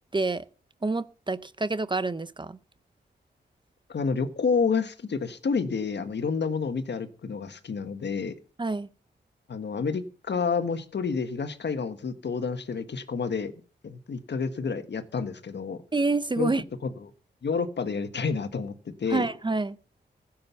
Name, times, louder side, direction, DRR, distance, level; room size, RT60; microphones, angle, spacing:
voice 1, 0.1-0.4 0.8-2.6 8.6-8.9 15.9-16.6 19.1-19.8, right 3 dB, 25° right, 0.7 m, -27 dB
voice 2, 3.9-8.3 9.5-13.5 13.8-15.8 16.4-16.5 16.8-17.1 17.4-19.3, left 5 dB, 65° left, 1.6 m, -29 dB
15.5 x 7.6 x 7.1 m
wide cardioid pair, 105°, 19 cm